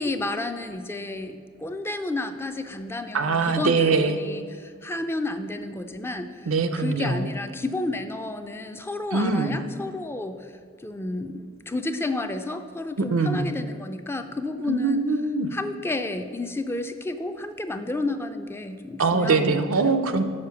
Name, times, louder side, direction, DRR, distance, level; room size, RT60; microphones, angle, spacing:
voice 1, 0.0-10.5 10.8-15.0 15.5-20.0, left 2 dB, 10° left, 7 dB, 0.4 m, -31 dB
voice 2, 3.1-4.2 6.5-7.3 9.1-9.6 13.0-13.5 14.7-15.5 19.0-20.2, right 4 dB, 85° right, 9 dB, 0.6 m, -22 dB
6.5 x 5.1 x 6.9 m, 2.1 s
head